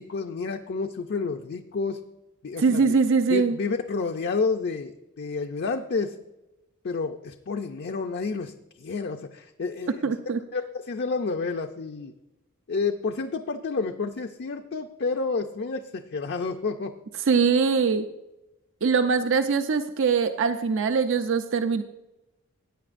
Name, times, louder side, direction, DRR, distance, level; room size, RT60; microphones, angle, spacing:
voice 1, 0.0-2.0 2.4-2.8 3.3-6.2 6.8-10.1 10.5-12.1 12.7-17.0, left 4 dB, 50° left, 4 dB, 0.5 m, -30 dB
voice 2, 2.6-3.6 10.0-10.4 17.3-18.1 18.8-21.8, right 5 dB, 60° right, 9 dB, 0.5 m, -22 dB
16.0 x 9.2 x 2.5 m, 0.98 s
head